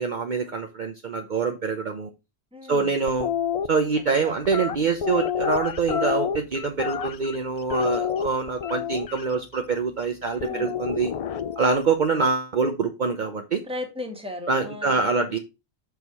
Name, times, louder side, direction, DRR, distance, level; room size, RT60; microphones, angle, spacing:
voice 1, 0.0-2.1 2.7-3.3 3.7-11.1 11.6-13.6 14.5-15.4, right 4 dB, 45° right, 0.9 m, -25 dB
voice 2, 2.5-2.9 4.1-4.4 10.3-10.7 13.6-15.4, left 2 dB, 5° right, 1.7 m, -36 dB
sound 1, 3.1-3.7 4.5-7.4 7.7-9.2 10.4-11.8, left 8 dB, 55° left, 0.4 m, -28 dB
6.6 x 4.6 x 5.4 m
omnidirectional pair, 1.1 m